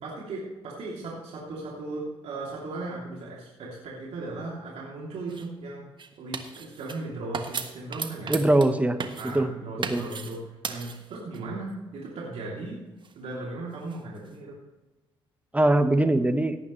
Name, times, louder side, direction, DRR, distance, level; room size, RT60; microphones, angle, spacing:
voice 1, 0.0-5.8 6.2-8.4 9.2-12.8 13.2-14.6, right 2 dB, 60° right, -4 dB, 3.0 m, -37 dB
sound 1, 5.3-5.5 6.0-7.0 7.3-8.7 9.0-9.4 9.8-10.4 10.6-11.4 13.0-14.4, right 5 dB, 40° right, 1.4 m, -36 dB
voice 2, 8.3-9.0 9.2-9.5 9.9-10.0 15.5-16.6, right 1 dB, 10° right, 9 dB, 1.3 m, -21 dB
17.5 x 9.0 x 3.2 m, 1.2 s
hypercardioid pair, 50°, 12 cm